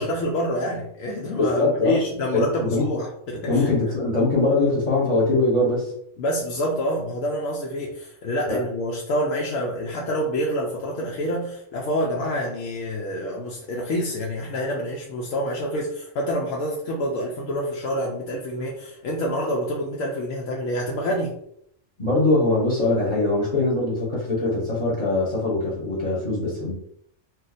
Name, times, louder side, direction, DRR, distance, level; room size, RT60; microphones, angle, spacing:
voice 1, 0.0-3.7 6.2-21.3, equal, 85° left, -2 dB, 1.0 m, -27 dB
voice 2, 1.4-2.0 2.3-2.9 3.5-5.9 8.5-8.6 22.0-26.7, left 2 dB, 35° left, -5 dB, 1.0 m, -22 dB
2.7 x 2.4 x 3.9 m, 0.69 s
omnidirectional pair, 1.3 m